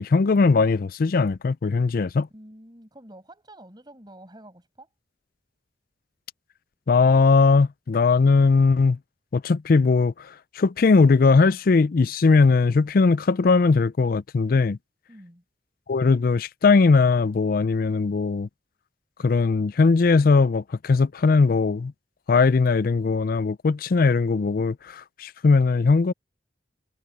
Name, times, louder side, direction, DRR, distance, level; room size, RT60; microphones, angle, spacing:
voice 1, 0.0-2.3 6.9-9.0 9.3-10.3 10.6-14.8 15.9-18.5 19.2-21.9 22.3-26.1, left 4 dB, 50° left, 0.4 m, -19 dB
voice 2, 2.3-4.9 15.1-15.4, right 1 dB, 25° right, 7.0 m, -47 dB
head